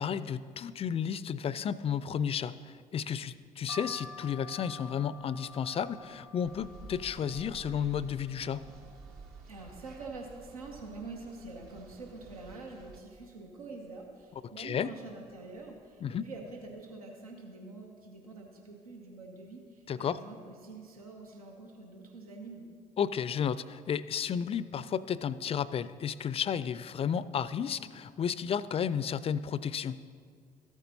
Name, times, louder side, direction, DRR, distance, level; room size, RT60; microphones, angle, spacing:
voice 1, 0.0-8.6 14.6-14.9 16.0-16.2 19.9-20.2 23.0-30.0, left 8 dB, 35° left, 17 dB, 0.4 m, -32 dB
sound 1, 3.7-9.4 9.8-10.6 11.0-11.1 11.2-12.4 12.9-13.2 14.0-14.3 15.1-15.3 15.6-15.8, left 2 dB, 20° right, 0.7 m, -50 dB
sound 2, 6.4-13.0, right 4 dB, 60° right, 1.0 m, -51 dB
voice 2, 9.5-22.7, right 3 dB, 90° right, 1 dB, 0.8 m, -46 dB
13.5 x 8.1 x 2.7 m, 2.1 s
figure-of-eight pair, 50°, 18 cm